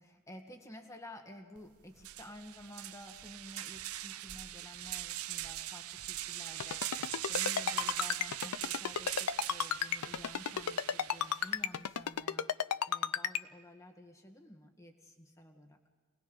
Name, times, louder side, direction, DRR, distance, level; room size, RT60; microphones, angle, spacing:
voice 1, 0.0-12.5 12.9-15.8, left 1 dB, 15° left, 4 dB, 1.9 m, -52 dB
sound 1, 1.6-1.7 2.0-11.6, right 14 dB, 75° right, 0.6 m, -41 dB
Ringtone, 6.6-13.4, left 8 dB, 85° left, 0.6 m, -32 dB
28.5 x 20.0 x 5.4 m, 1.5 s
head